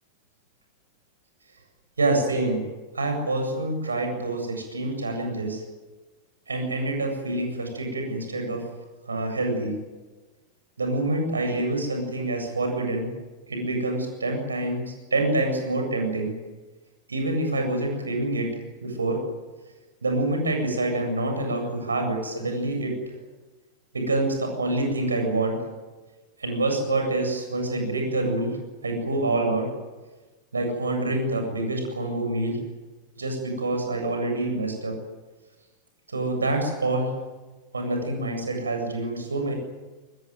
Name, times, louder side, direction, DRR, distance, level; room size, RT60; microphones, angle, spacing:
voice 1, 2.0-2.6 2.9-5.6 6.5-8.6 9.1-9.7 10.8-13.1 13.5-14.8 15.1-16.3 17.1-18.5 18.8-19.2 20.0-22.9 23.9-25.6 26.4-28.6 28.8-29.7 30.5-32.6 33.2-34.9 36.1-37.1 37.7-39.6, right 2 dB, 75° right, 4 dB, 7.8 m, -26 dB
25.0 x 20.0 x 9.4 m, 1.3 s
figure-of-eight pair, 90°, 0 cm